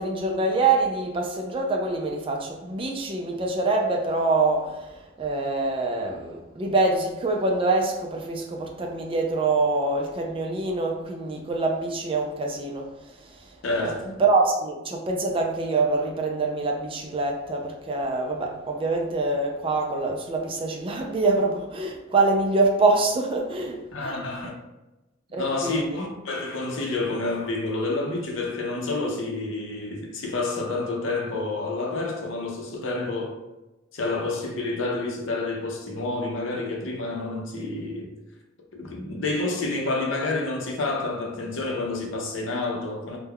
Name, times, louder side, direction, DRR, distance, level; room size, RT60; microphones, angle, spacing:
voice 1, 0.0-4.8 5.2-12.8 13.7-24.1 25.3-25.8, right 3 dB, 25° right, 0.3 m, -25 dB
voice 2, 13.6-14.2 23.9-24.6 25.4-33.3 33.9-38.1 38.7-43.2, left 2 dB, 70° left, 0.6 m, -29 dB
2.2 x 2.1 x 3.4 m
head